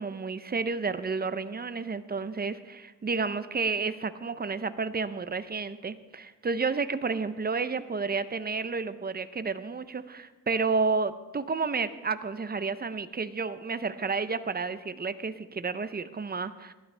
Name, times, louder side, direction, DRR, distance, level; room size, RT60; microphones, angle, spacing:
voice 1, 0.0-16.7, right 4 dB, 30° right, 12 dB, 0.5 m, -31 dB
18.5 x 11.5 x 3.3 m, 1.1 s
wide cardioid pair, 160°, 33 cm